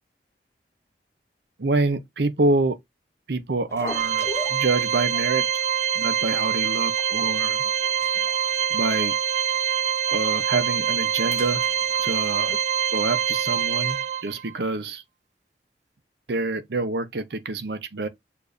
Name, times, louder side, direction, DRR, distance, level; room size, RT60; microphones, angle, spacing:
voice 1, 1.6-2.8 3.3-5.5 5.9-7.6 8.7-9.2 10.1-11.6 12.0-12.6 12.9-15.0 16.3-18.1, right 3 dB, 75° right, 0.7 m, -26 dB
sound 1, 3.7-5.3 5.6-5.8 6.1-6.2 6.8-7.3 7.6-9.7 10.0-10.2 10.6-12.6, left 2 dB, 15° left, 0.6 m, -41 dB
Organ, 3.9-14.5, right 8 dB, 40° right, 0.3 m, -25 dB
6.9 x 2.6 x 2.5 m
head